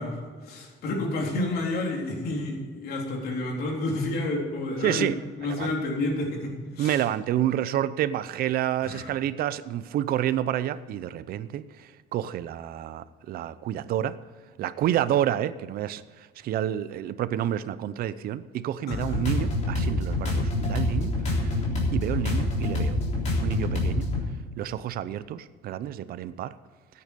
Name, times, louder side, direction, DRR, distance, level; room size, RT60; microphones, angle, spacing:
voice 1, 0.0-7.0 8.8-9.1 18.9-19.1, left 2 dB, 65° left, 0 dB, 3.7 m, -30 dB
voice 2, 4.8-5.1 5.4-5.7 6.8-14.2 14.6-21.6 21.9-23.0 23.4-24.1 24.6-26.5, right 11 dB, 60° right, 15 dB, 0.6 m, -29 dB
sound 1, 18.9-24.2, left 2 dB, 40° left, 3.6 m, -26 dB
14.0 x 9.6 x 5.2 m, 1.5 s
cardioid pair, 160°, 17 cm